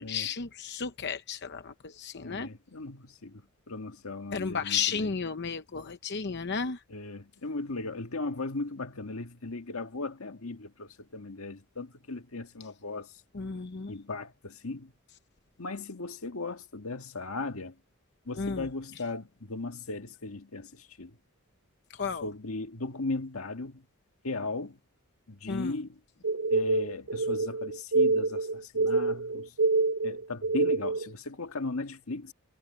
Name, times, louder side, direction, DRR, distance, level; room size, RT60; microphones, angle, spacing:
voice 1, 0.0-2.5 4.3-6.8 13.3-13.9 18.4-18.7 21.9-22.2 25.5-25.7, left 5 dB, 55° left, 0.8 m, -33 dB
voice 2, 2.2-5.1 6.9-13.1 13.9-14.9 15.6-17.7 18.3-21.1 22.2-23.9 24.2-24.8 25.3-26.0 26.5-29.5 30.0-32.3, left 3 dB, 85° left, 1.7 m, -37 dB
sound 1, 26.2-31.1, right 3 dB, 80° right, 0.6 m, -27 dB
head